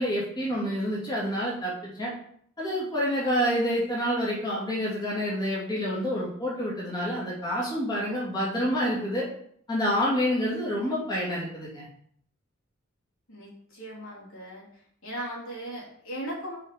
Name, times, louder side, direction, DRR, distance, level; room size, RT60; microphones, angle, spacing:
voice 1, 0.0-2.1 2.6-9.3 9.7-11.9, equal, 20° left, -6 dB, 2.5 m, -28 dB
voice 2, 13.3-14.6 15.0-16.6, right 1 dB, 80° left, -5 dB, 3.3 m, -38 dB
6.8 x 5.0 x 5.0 m, 0.65 s
head